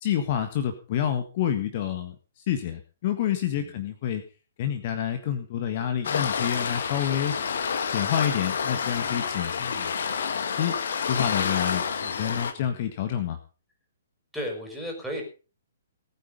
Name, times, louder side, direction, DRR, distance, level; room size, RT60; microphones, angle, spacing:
voice 1, 0.0-4.2 4.6-7.3 7.9-9.9 10.3-10.7 11.1-13.4, left 10 dB, 40° left, 8 dB, 1.6 m, -28 dB
Waves surf, 6.0-12.5, left 6 dB, 55° left, 2.0 m, -29 dB
voice 2, 14.3-15.2, equal, ahead, -1 dB, 5.5 m, -35 dB
19.0 x 9.1 x 5.3 m, 0.35 s
figure-of-eight pair, 125°, 0 cm